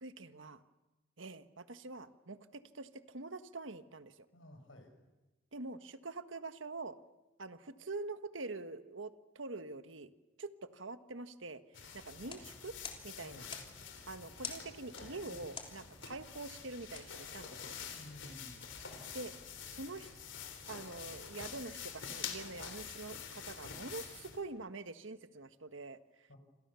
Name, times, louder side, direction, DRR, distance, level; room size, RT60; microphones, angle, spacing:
voice 1, 0.0-0.6 1.2-4.3 5.5-7.0 7.4-10.1 10.4-12.7 13.0-13.5 14.1-17.7 19.1-19.3 19.7-20.1 20.7-26.3, right 3 dB, 80° right, 10 dB, 1.4 m, -45 dB
voice 2, 4.3-4.9 13.2-13.6 15.2-15.4 17.9-18.6 26.3-26.4, left 1 dB, 90° left, 6 dB, 6.1 m, -53 dB
sound 1, 11.7-24.4, left 7 dB, 70° left, 3.6 m, -47 dB
sound 2, 12.2-17.9, left 5 dB, 30° left, 3.4 m, -51 dB
28.0 x 27.0 x 7.0 m, 1.1 s
head